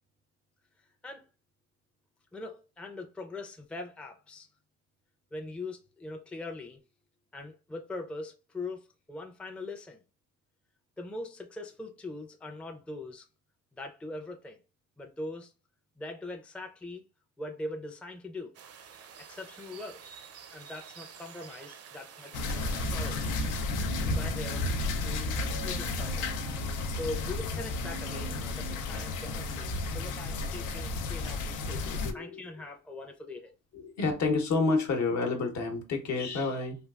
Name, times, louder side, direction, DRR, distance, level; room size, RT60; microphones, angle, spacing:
voice 1, 2.3-4.5 5.3-6.8 7.3-10.0 11.0-13.2 13.7-14.6 15.0-15.5 16.0-17.0 17.4-18.5 19.3-20.0 20.5-23.3 24.0-24.7 25.0-26.3 26.9-33.5, left 2 dB, 5° left, 0.4 m, -41 dB
sound 1, 18.5-23.6, right 7 dB, 55° right, 0.5 m, -49 dB
sound 2, 22.3-32.1, left 2 dB, 90° left, 0.5 m, -32 dB
Human voice, 23.8-24.8 25.3-26.9 27.7-29.0, right 3 dB, 80° right, 0.7 m, -47 dB
voice 2, 31.8-32.4 33.7-36.8, left 3 dB, 65° left, 0.9 m, -29 dB
3.3 x 2.3 x 2.2 m
cardioid pair, 90°, 30 cm